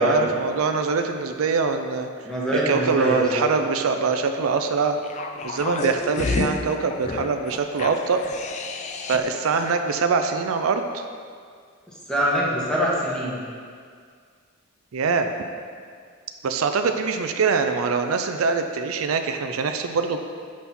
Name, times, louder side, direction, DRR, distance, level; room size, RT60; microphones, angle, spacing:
voice 1, 0.0-2.1 2.7-5.0 5.4-8.2 9.1-11.0 14.9-15.3 16.4-20.2, right 4 dB, 90° right, 7 dB, 0.4 m, -23 dB
voice 2, 2.2-3.4 12.1-13.4, equal, 5° left, -6 dB, 1.3 m, -23 dB
sound 1, 5.0-9.4 9.7-9.8, left 3 dB, 35° left, 0.4 m, -30 dB
6.1 x 5.6 x 4.2 m, 2.1 s
head